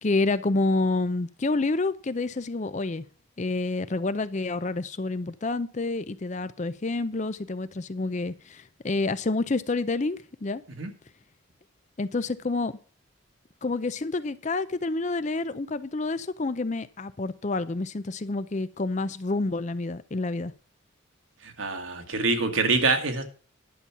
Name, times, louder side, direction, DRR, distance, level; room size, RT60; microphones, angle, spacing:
voice 1, 0.0-3.0 3.4-10.6 12.0-12.8 13.6-20.5, left 3 dB, 35° left, 0.5 m, -28 dB
voice 2, 21.4-23.2, right 3 dB, 70° right, 1.7 m, -25 dB
11.0 x 7.1 x 5.9 m
head